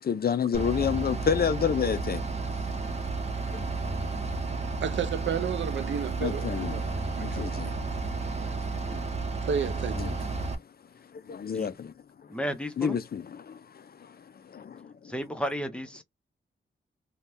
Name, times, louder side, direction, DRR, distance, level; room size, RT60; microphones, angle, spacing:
voice 1, 0.1-2.2 6.2-6.8 7.2-7.7 10.0-10.1 11.3-11.9 12.8-13.2, left 7 dB, 45° left, 0.5 m, -28 dB
Bus / Idling, 0.5-10.5, right 3 dB, 30° right, 0.8 m, -32 dB
voice 2, 4.8-7.5 8.4-8.5 9.5-10.0, right 7 dB, 65° right, 0.4 m, -32 dB
voice 3, 12.3-13.0 15.1-16.0, equal, 5° left, 0.7 m, -33 dB
2.7 x 2.2 x 3.3 m
wide cardioid pair, 105°, 21 cm